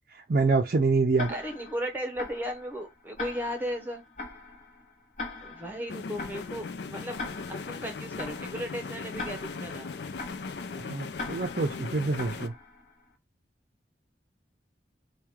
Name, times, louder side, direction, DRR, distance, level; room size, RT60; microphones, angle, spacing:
voice 1, 0.1-1.4 10.8-12.5, right 3 dB, 50° right, 0.4 m, -26 dB
Tick-tock, 1.2-13.0, left 3 dB, 45° left, 1.1 m, -42 dB
voice 2, 1.3-4.0 5.4-7.2 7.5-9.9, equal, 10° right, 0.8 m, -36 dB
sound 1, 5.9-12.5, left 4 dB, 75° left, 0.5 m, -38 dB
4.6 x 2.2 x 3.5 m
head